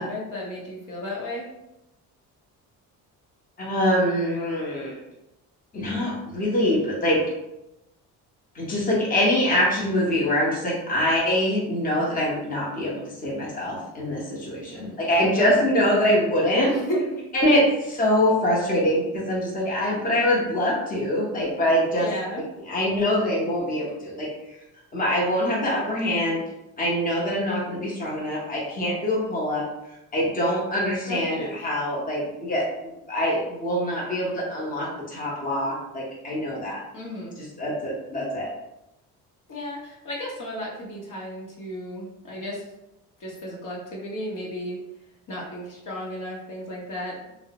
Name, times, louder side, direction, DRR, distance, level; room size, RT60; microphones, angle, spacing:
voice 1, 0.0-1.5 14.7-14.9 16.6-17.2 22.0-22.4 31.1-31.7 36.9-37.4 39.5-42.6 43.2-44.8 45.3-47.2, left 1 dB, 50° left, -4 dB, 0.9 m, -33 dB
voice 2, 3.6-5.0 5.7-7.2 8.5-16.7 17.3-22.1 22.7-24.3 24.9-26.4 26.8-29.6 30.1-36.8 37.6-38.5, equal, 20° left, -4 dB, 0.8 m, -24 dB
2.6 x 2.0 x 2.8 m, 0.91 s
cardioid pair, 100°, 39 cm